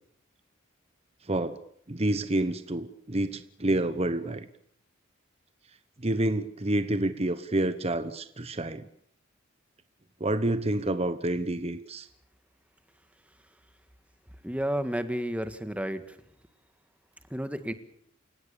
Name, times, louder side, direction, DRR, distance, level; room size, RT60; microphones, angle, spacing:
voice 1, 1.3-1.6 1.9-4.5 6.0-8.9 10.2-12.1, right 1 dB, 30° right, 11 dB, 1.1 m, -28 dB
voice 2, 14.4-16.1 17.3-17.7, equal, 5° right, 10 dB, 1.7 m, -31 dB
29.5 x 17.0 x 7.0 m, 0.66 s
head